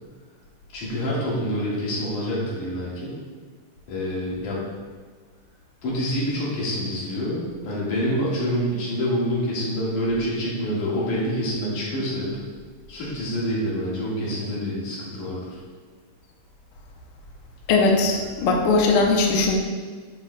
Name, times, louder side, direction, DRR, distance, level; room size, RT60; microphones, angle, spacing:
voice 1, 0.7-3.1 3.9-4.6 5.8-12.4 12.9-15.6, equal, 70° left, -6 dB, 3.2 m, -27 dB
voice 2, 17.7-19.5, left 3 dB, 85° left, 1 dB, 1.2 m, -19 dB
9.7 x 5.9 x 2.3 m, 1.5 s
omnidirectional pair, 3.6 m